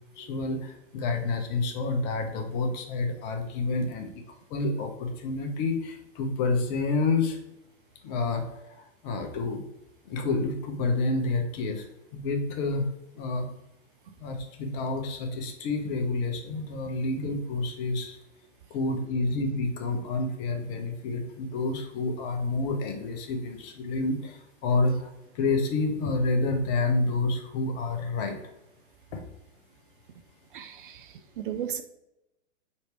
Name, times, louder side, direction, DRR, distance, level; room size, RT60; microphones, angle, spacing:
voice 1, 0.2-4.1 4.5-7.4 8.0-8.4 8.8-9.6 10.1-11.9 12.1-12.9 13.2-13.5 14.2-18.2 18.7-28.4 29.1-29.2, left 3 dB, 35° left, 4 dB, 1.1 m, -29 dB
voice 2, 30.5-31.8, right 9 dB, 45° right, 9 dB, 0.5 m, -36 dB
4.7 x 4.4 x 4.6 m, 0.90 s
figure-of-eight pair, 115°, 38 cm